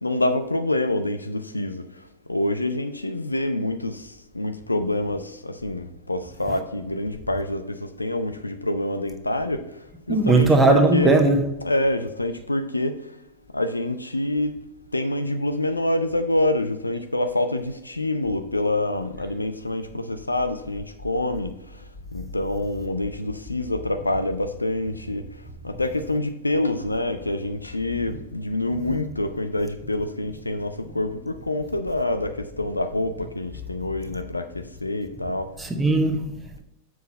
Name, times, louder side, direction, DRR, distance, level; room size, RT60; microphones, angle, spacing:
voice 1, 0.0-13.2 13.5-14.5 14.9-21.8 22.1-35.5, left 1 dB, 85° left, 0.6 m, -26 dB
voice 2, 10.1-11.5 35.6-36.6, right 2 dB, 15° right, 1.1 m, -19 dB
7.2 x 6.2 x 4.2 m
figure-of-eight pair, 90°, 0 cm